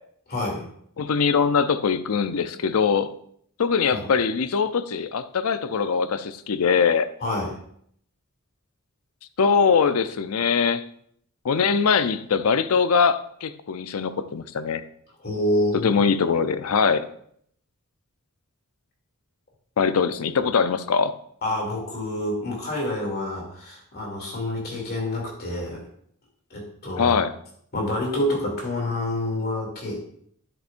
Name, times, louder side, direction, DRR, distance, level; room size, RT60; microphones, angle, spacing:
voice 1, 0.3-0.7 3.9-4.1 7.2-7.5 15.2-15.9 21.4-25.8 26.5-27.2 27.7-30.1, left 1 dB, 45° left, -1 dB, 2.7 m, -27 dB
voice 2, 1.0-3.1 3.6-7.1 9.4-10.8 11.4-14.8 15.7-17.1 19.8-21.1 27.0-27.3, left 5 dB, 70° left, 12 dB, 0.5 m, -22 dB
10.0 x 7.8 x 2.5 m, 0.67 s
head